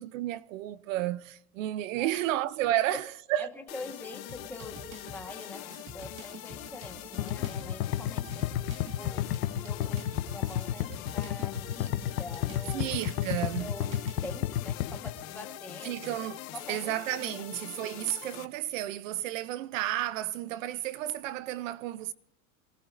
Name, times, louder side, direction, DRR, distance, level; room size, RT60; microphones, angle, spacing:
voice 1, 0.0-3.5 12.7-13.8 15.8-16.4 16.7-22.1, right 14 dB, 60° right, 0.6 m, -32 dB
voice 2, 3.4-12.9 13.4-16.0 16.5-16.9 17.2-17.4, left 2 dB, 5° left, 1.2 m, -45 dB
sound 1, 3.7-18.4, left 15 dB, 65° left, 1.6 m, -44 dB
sound 2, 4.3-14.4, equal, 25° right, 1.7 m, -48 dB
sound 3, 7.2-15.1, left 12 dB, 85° left, 1.0 m, -31 dB
25.5 x 18.5 x 2.5 m
supercardioid pair, 175°, 45 cm